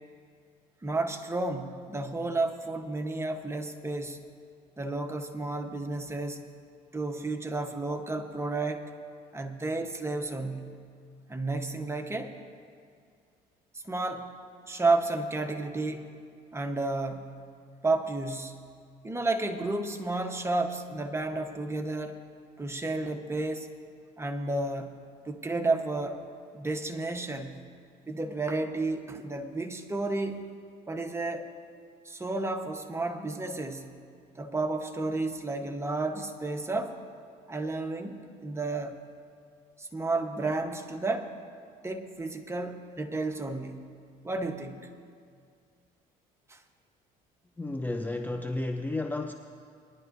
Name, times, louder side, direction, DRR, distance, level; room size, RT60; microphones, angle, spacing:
voice 1, 0.8-4.2 4.8-6.4 6.9-8.9 9.3-10.8 11.3-12.4 13.7-14.3 14.7-16.1 16.5-17.5 17.8-18.7 19.0-22.2 22.6-23.7 24.2-26.2 26.5-27.7 28.1-30.4 30.9-31.5 32.0-34.0 34.4-37.0 37.5-39.0 39.8-41.3 41.8-43.9 44.2-44.9 46.5-46.6, right 2 dB, 15° right, 5 dB, 1.1 m, -32 dB
voice 2, 47.6-49.3, left 2 dB, 10° left, 5 dB, 0.6 m, -32 dB
21.5 x 11.0 x 2.7 m, 2.2 s
supercardioid pair, 80°, 18 cm